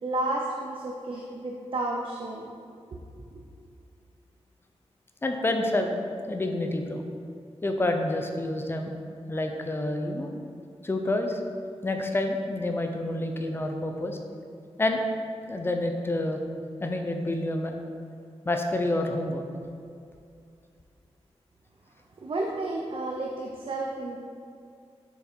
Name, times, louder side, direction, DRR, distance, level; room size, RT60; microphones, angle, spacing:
voice 1, 0.0-2.5 2.9-3.0 3.3-3.4 22.2-24.2, right 2 dB, 50° right, 0 dB, 0.7 m, -32 dB
voice 2, 5.2-6.0 6.3-7.0 7.6-8.9 9.3-10.3 10.8-11.4 11.8-14.2 14.8-15.0 15.5-16.4 16.8-17.8 18.4-19.4, left 1 dB, 20° left, 4 dB, 0.6 m, -28 dB
7.0 x 6.1 x 4.4 m, 2.4 s
wide cardioid pair, 165°, 11 cm